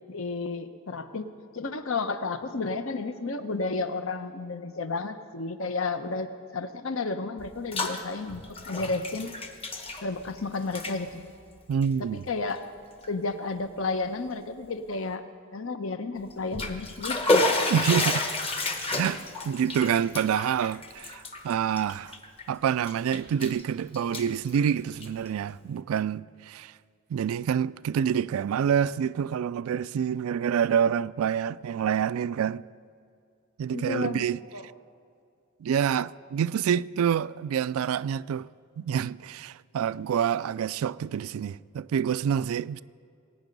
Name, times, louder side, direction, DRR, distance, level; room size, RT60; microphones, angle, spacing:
voice 1, 0.1-1.3 1.5-6.3 6.5-9.3 10.0-11.2 12.3-12.6 13.1-15.2 15.5-17.5 33.7-34.2 34.5-34.7, left 3 dB, 65° left, 0.8 m, -32 dB
Bathtub (filling or washing), 7.4-8.0 8.3-10.4 10.7-11.0 11.7-11.9 12.5-12.6 13.0-13.1 16.3-22.4 22.8-23.6 23.9-25.3, left 2 dB, 25° left, 1.0 m, -30 dB
voice 2, 11.7-12.2 17.7-18.3 19.0-22.1 22.5-26.7 27.1-32.6 33.6-34.4 35.6-38.5 38.8-42.8, right 8 dB, 75° right, 0.3 m, -27 dB
22.0 x 9.3 x 5.3 m
head